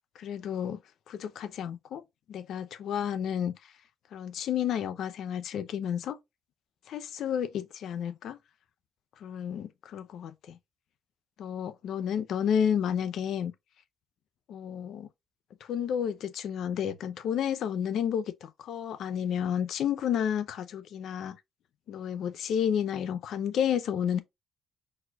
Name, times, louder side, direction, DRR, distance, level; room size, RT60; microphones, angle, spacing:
voice 1, 0.2-0.8 1.1-2.0 2.3-3.7 4.1-6.2 6.9-8.4 9.2-10.6 11.4-13.5 14.5-15.1 15.6-21.4 21.9-24.2, left 8 dB, 75° left, 0.6 m, -31 dB
4.4 x 4.3 x 2.3 m
cardioid pair, 90°, 0 cm